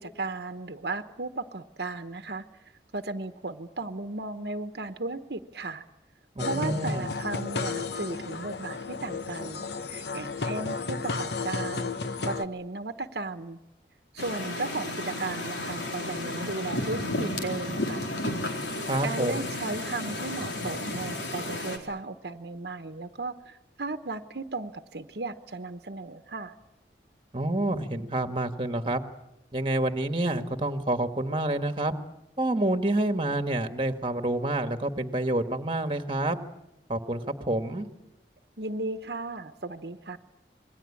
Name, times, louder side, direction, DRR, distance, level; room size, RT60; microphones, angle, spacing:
voice 1, 0.0-2.4 2.9-5.8 6.4-11.9 12.2-13.6 14.1-18.0 18.8-26.5 38.6-40.2, right 3 dB, 70° right, 9 dB, 1.1 m, -35 dB
voice 2, 6.3-7.1 18.9-19.5 27.3-29.0 29.5-31.9 32.4-36.4 36.9-37.9, right 1 dB, 30° right, 8 dB, 1.6 m, -28 dB
sound 1, 6.4-12.4, left 4 dB, 75° left, 1.0 m, -33 dB
sound 2, 14.2-21.8, left 1 dB, 90° left, 4.3 m, -33 dB
27.5 x 22.0 x 8.6 m, 0.89 s
head